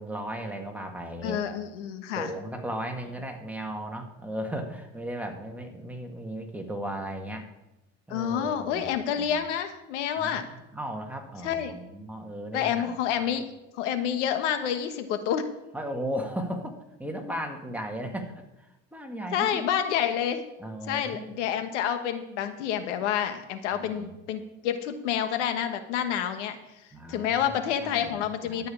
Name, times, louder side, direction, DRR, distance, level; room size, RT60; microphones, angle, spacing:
voice 1, 0.0-1.4 2.2-7.5 8.1-9.4 10.2-13.2 15.7-19.6 20.6-21.4 23.7-24.1 26.9-28.6, right 1 dB, 5° right, 2 dB, 2.1 m, -36 dB
voice 2, 1.2-2.3 8.1-10.5 11.4-11.7 12.5-13.4 13.7-15.5 19.3-20.4 20.9-26.6 27.1-28.7, left 9 dB, 90° left, 8 dB, 1.3 m, -28 dB
12.5 x 5.7 x 8.7 m, 0.94 s
supercardioid pair, 95°, 35 cm